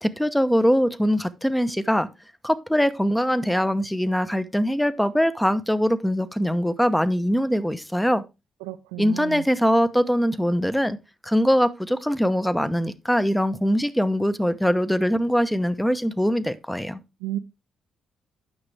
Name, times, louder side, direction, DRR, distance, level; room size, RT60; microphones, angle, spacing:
voice 1, 0.0-2.1 2.4-8.2 9.0-11.0 11.2-17.0, equal, 5° left, 0.8 m, -22 dB
voice 2, 8.6-9.4 17.2-17.4, right 14 dB, 85° right, 0.5 m, -32 dB
9.7 x 6.1 x 3.3 m
hypercardioid pair, 45°, 0 cm